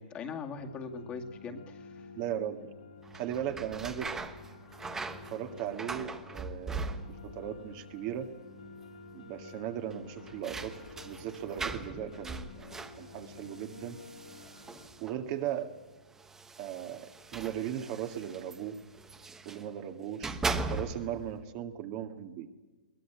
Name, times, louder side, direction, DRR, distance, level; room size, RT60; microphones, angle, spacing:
voice 1, 0.0-2.1, left 5 dB, 25° left, 3 dB, 2.2 m, -41 dB
sound 1, 0.6-14.9, left 5 dB, 75° left, 5.8 m, -51 dB
voice 2, 2.2-2.7 3.1-4.2 5.3-8.3 9.1-14.0 15.0-15.7 16.6-18.8 19.5-22.5, right 10 dB, 40° right, 6 dB, 1.9 m, -38 dB
sound 2, 3.0-7.5 7.7-8.4 8.7-8.8 9.9-15.3 16.2-19.7 20.1-21.2, right 3 dB, 10° right, 1.2 m, -40 dB
22.0 x 18.5 x 9.1 m, 1.2 s
hypercardioid pair, 145°, 5 cm